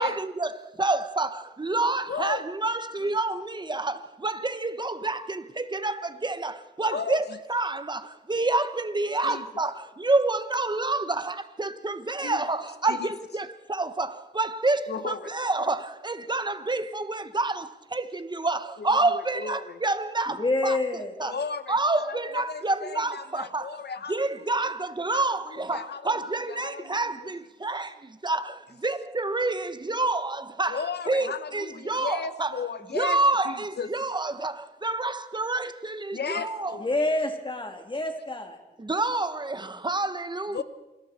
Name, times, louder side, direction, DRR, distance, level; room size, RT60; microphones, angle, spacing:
voice 1, 0.0-21.4 21.7-23.8 24.1-32.6 32.9-36.8 38.8-40.6, right 2 dB, 25° right, 1.2 m, -28 dB
voice 2, 2.1-2.4 3.0-3.1 6.9-7.4 9.2-9.5 12.2-12.4 12.9-13.1 14.9-15.3 18.8-19.8 21.2-24.7 25.1-27.3 30.7-33.9 36.1-37.0 40.5-40.6, left 6 dB, 70° left, 1.3 m, -36 dB
voice 3, 20.4-21.1 36.8-38.6, left 2 dB, 30° left, 3.2 m, -27 dB
28.0 x 25.0 x 4.4 m
wide cardioid pair, 100°, 18 cm